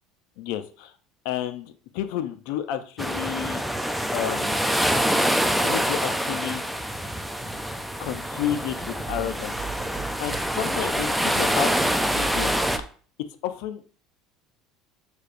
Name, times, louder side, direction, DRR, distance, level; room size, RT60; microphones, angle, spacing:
voice 1, 0.4-0.9 1.2-2.8 3.1-3.6 4.1-4.8 5.6-6.6 8.0-9.6 10.2-11.7 12.1-12.5 13.4-13.8, left 11 dB, 75° left, 9 dB, 0.5 m, -31 dB
sound 1, 3.0-12.8, equal, ahead, 0.4 m, -26 dB
sound 2, 7.3-12.8, right 6 dB, 25° right, 0.9 m, -40 dB
6.3 x 2.8 x 2.5 m, 0.42 s
supercardioid pair, 120°, 0 cm